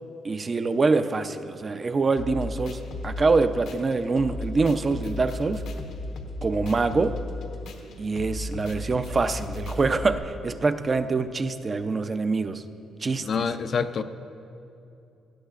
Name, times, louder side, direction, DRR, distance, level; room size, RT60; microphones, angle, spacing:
voice 1, 0.2-5.6 6.4-7.2 8.0-12.6 13.0-13.5, right 3 dB, 35° right, 9 dB, 0.5 m, -25 dB
sound 1, 2.2-10.1, left 2 dB, 80° left, 1.1 m, -35 dB
voice 2, 13.3-14.0, left 6 dB, 50° left, 10 dB, 0.5 m, -26 dB
18.0 x 12.5 x 2.5 m, 2.7 s
cardioid pair, 90°, 0 cm